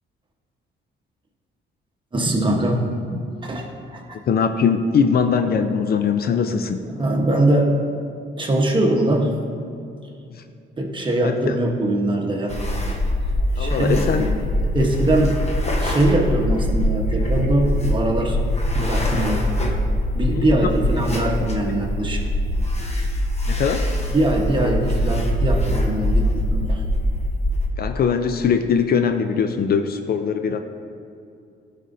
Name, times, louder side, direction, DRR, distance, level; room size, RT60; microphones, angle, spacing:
voice 1, 2.1-4.2 6.9-7.7 8.4-9.3 10.8-12.6 13.6-15.4 15.8-18.4 18.7-19.4 20.1-22.2 24.1-26.8, right 1 dB, 25° right, 0 dB, 1.2 m, -22 dB
voice 2, 4.3-6.8 10.3-10.4 11.2-11.6 13.6-14.3 20.3-20.7 23.5-23.8 27.8-30.6, left 6 dB, 50° left, 7 dB, 0.4 m, -21 dB
sound 1, 12.5-27.7, left 1 dB, 35° left, 1.0 m, -23 dB
11.5 x 5.0 x 2.7 m, 2.5 s
cardioid pair, 90°, 20 cm